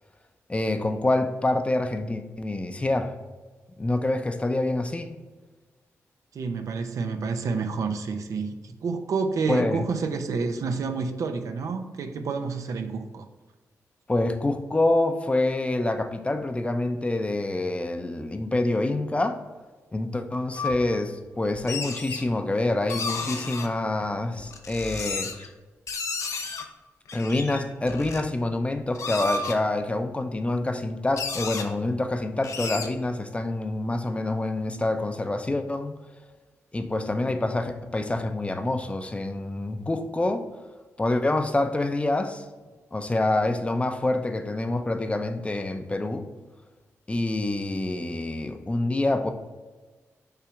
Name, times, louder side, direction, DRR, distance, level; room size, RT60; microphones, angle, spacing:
voice 1, 0.5-3.1 3.8-5.1 9.5-9.8 14.1-19.4 19.9-25.5 26.2-26.6 27.1-35.9 36.7-40.4 41.0-42.4 42.9-46.3 47.1-49.3, left 2 dB, 20° left, 7 dB, 0.6 m, -26 dB
voice 2, 6.3-13.3, right 4 dB, 75° right, 7 dB, 0.6 m, -29 dB
sound 1, 20.5-20.8 21.6-22.2 22.9-23.7 24.4-25.5 25.9-26.6 27.1-28.2 28.8-29.6 30.5-30.6 30.8-30.9 31.2-31.6 32.4-32.9, left 4 dB, 65° left, 0.8 m, -32 dB
5.8 x 3.4 x 5.1 m, 1.3 s
cardioid pair, 75°, 6 cm